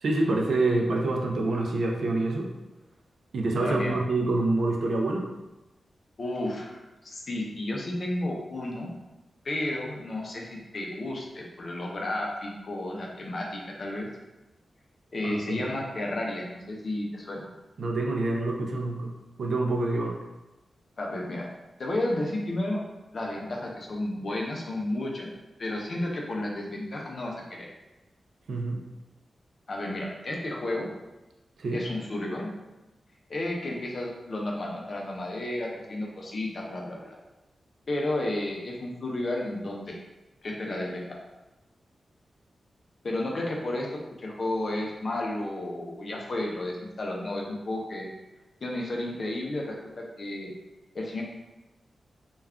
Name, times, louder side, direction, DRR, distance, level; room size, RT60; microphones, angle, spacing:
voice 1, 0.0-2.5 3.3-5.3 15.2-15.7 17.8-19.1 19.4-20.2 28.5-28.8 31.6-31.8, right 2 dB, 70° right, 1 dB, 0.4 m, -26 dB
voice 2, 3.6-4.0 6.2-8.9 9.4-14.1 15.1-17.5 21.0-21.5 21.8-22.8 23.1-25.3 25.6-27.7 29.7-30.9 31.7-32.5 33.3-37.0 37.9-40.0 40.4-41.2 43.0-43.9 44.2-48.1 48.6-50.5 50.9-51.2, left 1 dB, 40° left, -1 dB, 0.5 m, -32 dB
2.3 x 2.2 x 3.5 m, 1.0 s
wide cardioid pair, 180°, 0 cm